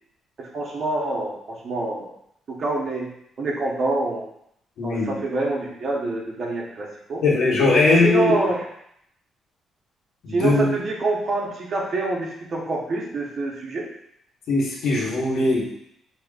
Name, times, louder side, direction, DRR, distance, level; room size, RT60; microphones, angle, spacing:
voice 1, 0.4-2.1 2.5-3.1 3.4-4.3 4.8-7.2 7.8-8.6 10.3-13.9, right 2 dB, 50° right, -2 dB, 1.0 m, -26 dB
voice 2, 4.8-5.2 7.2-8.3 10.2-10.7 14.5-15.6, left 3 dB, 75° left, -6 dB, 1.2 m, -20 dB
5.1 x 2.9 x 2.4 m, 0.75 s
cardioid pair, 90°, 0 cm